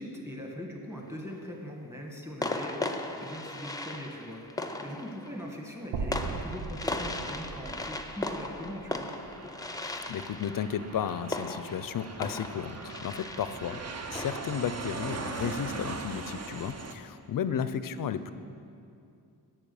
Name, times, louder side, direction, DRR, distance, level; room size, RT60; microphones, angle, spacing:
voice 1, 0.0-4.4 4.8-9.1 13.6-13.8 17.5-17.7, equal, 5° right, 1 dB, 1.5 m, -41 dB
sound 1, 0.9-1.5 2.4-15.8, left 2 dB, 10° left, 0.6 m, -38 dB
sound 2, 5.9-10.1, right 4 dB, 80° right, 0.7 m, -39 dB
Aircraft, 7.1-16.9, right 4 dB, 40° right, 0.7 m, -41 dB
voice 2, 9.8-13.8 14.1-18.3, left 8 dB, 55° left, 13 dB, 0.5 m, -34 dB
8.8 x 5.9 x 6.9 m, 2.5 s
cardioid pair, 65°, 41 cm